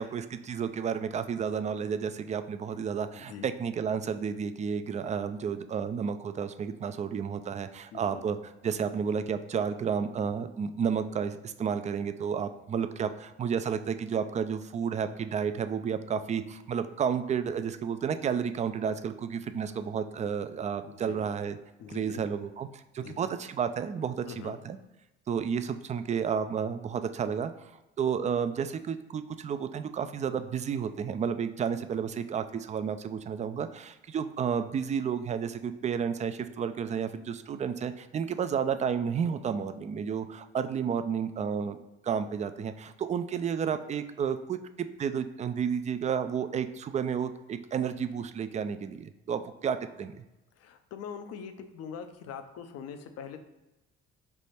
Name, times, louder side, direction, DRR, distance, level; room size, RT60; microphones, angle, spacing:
voice 1, 0.0-21.6 21.9-24.8 25.3-27.7 28.0-41.8 42.0-50.2, right 7 dB, 25° right, 10 dB, 0.3 m, -31 dB
voice 2, 3.1-3.5 7.9-8.2 20.8-21.2 21.8-22.2 23.0-23.3 24.3-24.6 50.6-53.4, left 7 dB, 55° left, 8 dB, 0.6 m, -43 dB
3.4 x 3.0 x 4.2 m, 0.99 s
hypercardioid pair, 55°, 31 cm